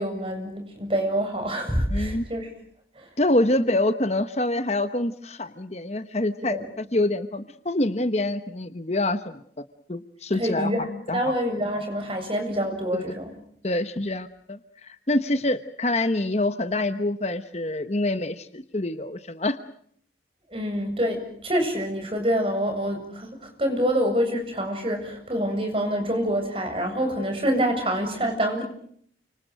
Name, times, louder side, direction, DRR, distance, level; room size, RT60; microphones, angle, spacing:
voice 1, 0.0-2.5 3.0-3.1 6.5-6.6 10.3-13.3 20.5-28.6, equal, 30° right, 5 dB, 7.6 m, -26 dB
voice 2, 1.9-2.2 3.2-9.4 9.9-10.7 11.1-11.3 12.9-13.0 13.6-19.6, left 1 dB, 35° left, 10 dB, 1.1 m, -26 dB
30.0 x 26.0 x 6.5 m, 0.64 s
head